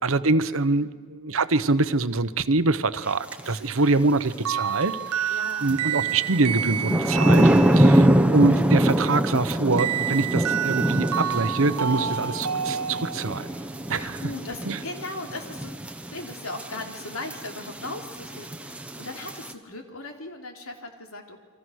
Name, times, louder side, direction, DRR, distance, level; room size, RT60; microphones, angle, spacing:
voice 1, 0.0-5.3 5.6-13.5 13.9-14.2 14.7-14.8, right 3 dB, 65° right, 13 dB, 1.0 m, -24 dB
sound 1, 3.3-3.4 5.7-19.5, right 1 dB, 5° right, 1.0 m, -24 dB
voice 2, 3.4-4.1 4.7-4.9 5.3-6.1 11.8-12.3 13.9-21.4, left 2 dB, 70° left, 4 dB, 3.2 m, -39 dB
sound 2, 4.4-8.2 9.8-13.5, right 8 dB, 85° right, 0.7 m, -29 dB
29.5 x 24.0 x 6.4 m, 1.5 s
head